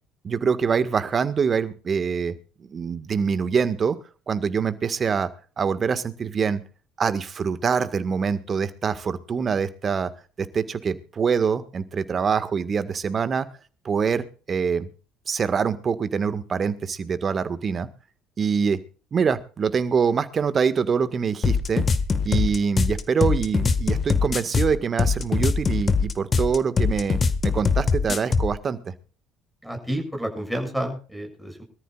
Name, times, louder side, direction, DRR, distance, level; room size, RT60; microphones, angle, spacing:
voice 1, 0.2-2.3 2.6-4.0 4.3-5.3 5.6-6.6 7.0-10.1 10.4-13.5 13.8-14.9 15.3-17.9 18.4-18.8 19.1-21.9 22.2-28.8, right 6 dB, 40° right, 12 dB, 1.8 m, -24 dB
sound 1, 21.4-28.5, left 5 dB, 35° left, 1.7 m, -22 dB
voice 2, 29.6-31.6, equal, ahead, 2 dB, 6.9 m, -30 dB
24.0 x 14.0 x 2.5 m, 0.37 s
hypercardioid pair, 60°, 0 cm